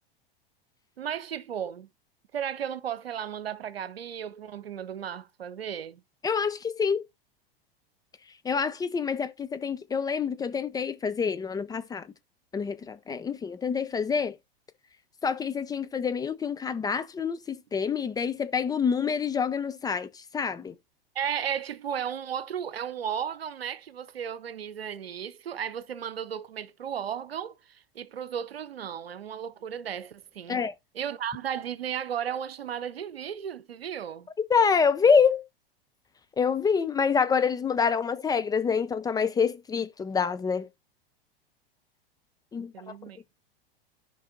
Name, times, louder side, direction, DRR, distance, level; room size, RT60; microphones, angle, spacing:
voice 1, 1.0-1.9 2.3-6.0 21.1-30.6 30.9-34.3 42.7-43.2, right 8 dB, 80° right, 0.8 m, -34 dB
voice 2, 6.2-7.0 8.4-12.0 12.5-14.4 15.2-20.7 30.5-30.7 34.5-35.4 36.4-40.7 42.5-42.7, left 6 dB, 15° left, 0.4 m, -26 dB
15.0 x 5.3 x 2.5 m
hypercardioid pair, 95°, 30 cm